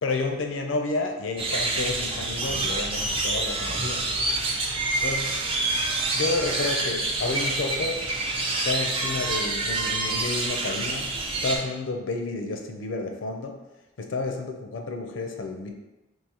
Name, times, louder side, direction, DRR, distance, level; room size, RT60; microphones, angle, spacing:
voice 1, 0.0-4.1 5.0-5.4 6.1-8.1 8.6-11.1 11.4-13.6 14.0-15.7, left 3 dB, 75° left, 4 dB, 0.5 m, -30 dB
sound 1, 1.4-11.6, right 2 dB, 25° right, 0.4 m, -27 dB
3.9 x 2.5 x 2.9 m, 0.99 s
head